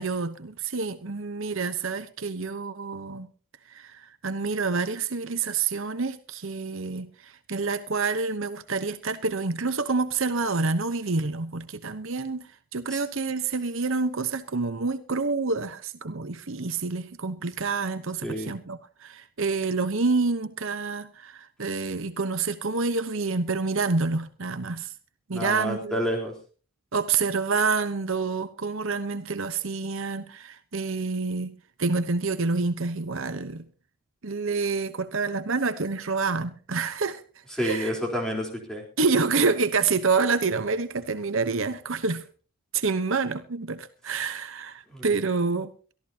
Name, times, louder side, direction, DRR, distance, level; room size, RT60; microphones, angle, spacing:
voice 1, 0.0-3.3 3.7-24.9 25.3-26.0 26.9-33.6 34.2-37.2 37.6-37.9 39.0-42.2 42.7-45.7, right 4 dB, 65° right, 1.0 m, -28 dB
voice 2, 18.2-18.5 25.3-26.3 37.6-38.8 44.9-45.1, equal, 5° left, 3.8 m, -29 dB
23.0 x 14.0 x 2.9 m
head